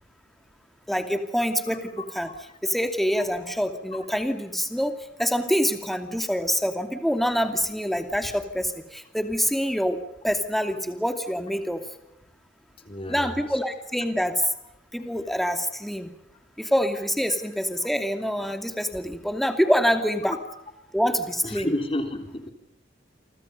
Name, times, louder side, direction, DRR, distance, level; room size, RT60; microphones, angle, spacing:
voice 1, 0.9-2.3 2.6-11.8 13.1-14.4 14.9-16.1 16.6-20.4 20.9-21.7, equal, ahead, 7 dB, 2.5 m, -26 dB
voice 2, 12.8-13.4 21.4-22.5, left 1 dB, 30° left, 6 dB, 3.8 m, -30 dB
29.5 x 24.5 x 5.5 m, 0.84 s
head